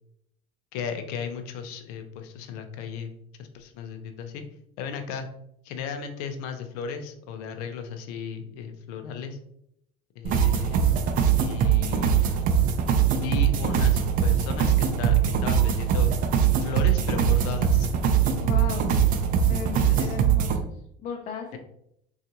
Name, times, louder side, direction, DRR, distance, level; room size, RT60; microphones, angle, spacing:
voice 1, 0.7-4.4 4.8-5.3 5.6-9.4 10.2-11.0 11.4-12.3 13.2-16.1 16.6-17.9 19.8-20.1, left 6 dB, 90° left, 6 dB, 0.5 m, -35 dB
sound 1, 10.2-20.6, right 8 dB, 50° right, 0.4 m, -22 dB
voice 2, 18.4-18.9 19.4-21.6, left 6 dB, 40° left, 1 dB, 0.5 m, -36 dB
3.6 x 2.4 x 2.8 m, 0.74 s
cardioid pair, 125°, 19 cm